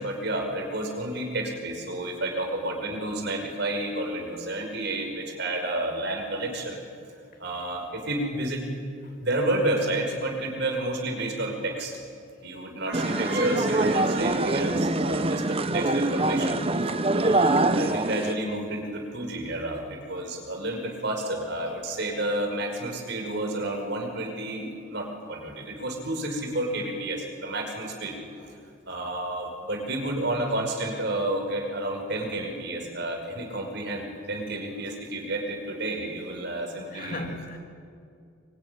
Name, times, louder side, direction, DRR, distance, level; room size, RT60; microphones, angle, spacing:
voice 1, 0.0-6.8 7.4-8.6 9.2-12.0 12.4-28.2 28.9-37.3, right 1 dB, 55° right, 5.5 m, -30 dB
sound 1, 12.9-18.3, right 2 dB, 30° right, 0.9 m, -24 dB
voice 2, 28.4-28.7 36.9-37.6, left 2 dB, 45° left, 2.9 m, -38 dB
25.5 x 23.5 x 9.8 m
head